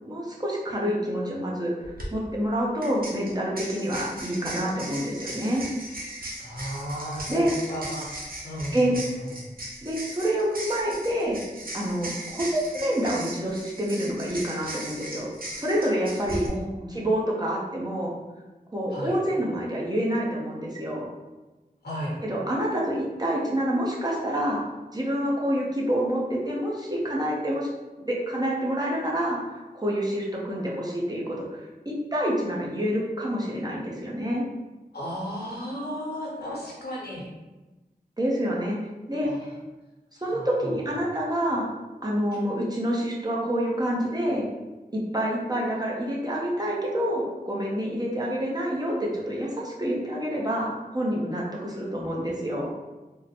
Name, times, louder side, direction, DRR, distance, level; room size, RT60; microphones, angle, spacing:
voice 1, 0.0-1.7 2.1-5.6 7.3-7.5 8.7-8.9 9.8-11.4 11.7-15.3 15.5-16.5 16.9-18.1 18.7-21.1 22.2-24.6 24.9-27.7 28.0-34.4 38.2-38.8 39.1-39.3 40.2-41.7 42.0-44.4 44.9-52.7, equal, 25° right, -4 dB, 0.7 m, -27 dB
sound 1, 1.8-2.1 2.8-16.5, right 1 dB, 65° right, 0.7 m, -38 dB
voice 2, 6.4-9.5 16.4-17.0 18.9-19.2 21.8-22.2 34.9-37.3 39.2-39.6 40.2-41.1, equal, 85° left, -5 dB, 1.0 m, -35 dB
3.7 x 2.1 x 2.8 m, 1.1 s
wide cardioid pair, 50°, 16 cm